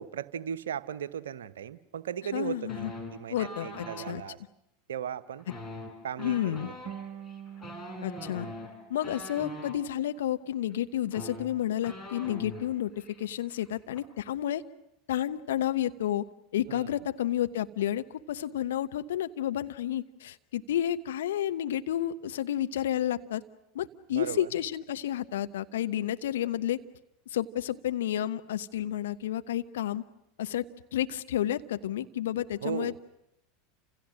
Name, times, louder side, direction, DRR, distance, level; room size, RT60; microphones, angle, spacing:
voice 1, 0.0-2.8 3.1-4.4 4.9-5.5 6.0-6.7 16.7-16.9 24.1-24.5 32.6-33.0, right 9 dB, 70° right, 12 dB, 1.0 m, -36 dB
voice 2, 2.3-2.9 3.3-4.2 6.2-6.7 8.0-8.5 8.9-14.6 15.1-16.2 16.5-23.4 23.7-26.8 27.3-30.0 30.4-30.6 30.9-33.0, left 11 dB, 70° left, 10 dB, 1.1 m, -31 dB
sound 1, 2.7-4.2 5.4-9.8 10.7-10.8 11.0-12.7 13.0-13.2 13.5-14.0, left 1 dB, 20° left, 6.8 m, -42 dB
sound 2, 6.9-10.0, right 9 dB, 50° right, 1.2 m, -46 dB
30.0 x 27.5 x 6.4 m, 0.84 s
figure-of-eight pair, 80°, 0 cm